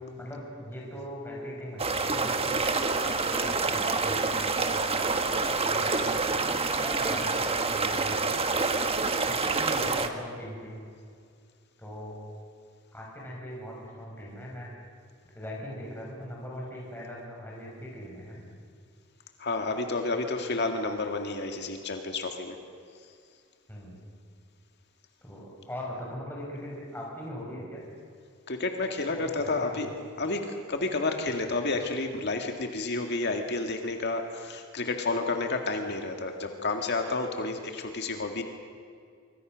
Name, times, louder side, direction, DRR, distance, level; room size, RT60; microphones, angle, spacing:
voice 1, 0.2-2.6 3.0-5.2 5.6-6.1 6.7-8.4 9.3-10.8 11.8-12.2 12.9-14.7 15.3-18.5 23.7-24.0 25.2-27.8 29.1-29.9 31.4-31.5, equal, 10° left, -3 dB, 5.7 m, -40 dB
sound 1, 1.8-10.1, right 3 dB, 30° right, 1.4 m, -27 dB
voice 2, 19.4-22.6 28.5-29.9 30.2-38.4, left 3 dB, 55° left, 4 dB, 2.0 m, -30 dB
25.0 x 25.0 x 6.3 m, 2.2 s
head